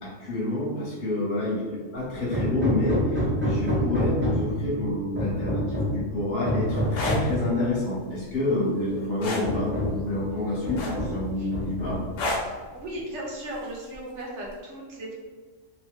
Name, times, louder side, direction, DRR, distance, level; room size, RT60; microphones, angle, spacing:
voice 1, 0.0-12.0, left 1 dB, 45° left, -6 dB, 1.0 m, -28 dB
voice 2, 1.5-1.9 11.4-11.5 11.8-12.0 12.7-15.1, right 1 dB, 70° right, -2 dB, 0.9 m, -37 dB
Hammer, 2.3-4.6 5.2-6.0 6.4-7.4 8.4-8.5 8.9-9.0 9.4-10.1 10.6-11.2 11.5-12.2, equal, 15° right, 0.4 m, -27 dB
sound 1, 6.8-7.2 9.2-9.5 10.8-11.2 12.2-12.5 13.9-14.1, left 2 dB, 90° left, 1.0 m, -28 dB
2.7 x 2.3 x 3.1 m, 1.4 s
omnidirectional pair, 1.3 m